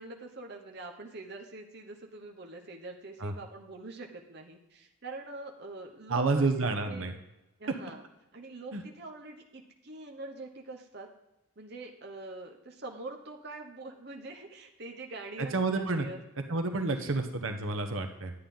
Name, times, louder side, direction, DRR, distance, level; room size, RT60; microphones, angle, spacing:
voice 1, 0.0-6.5 6.9-7.1 7.6-8.0 8.3-11.1 11.6-16.2, right 2 dB, 50° right, 2 dB, 1.0 m, -44 dB
voice 2, 6.1-7.1 8.7-8.8 15.4-16.1 16.5-18.3, right 3 dB, 75° right, 6 dB, 1.0 m, -29 dB
11.5 x 8.7 x 3.8 m, 0.95 s
head